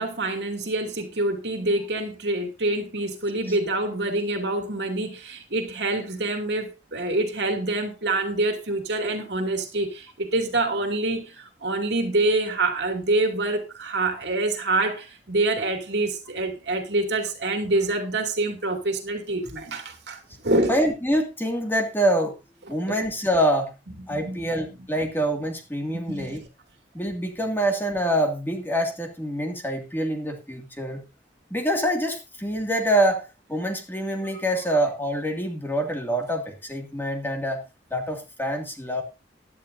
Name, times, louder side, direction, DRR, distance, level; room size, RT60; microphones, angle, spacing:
voice 1, 0.0-20.7 24.1-24.5 25.9-26.4, right 2 dB, 70° right, 2.7 m, -26 dB
voice 2, 20.7-22.4 22.7-23.7 24.1-26.4 26.9-31.0 31.5-37.6 37.9-39.0, equal, 10° left, 2.4 m, -25 dB
16.5 x 11.0 x 2.7 m
head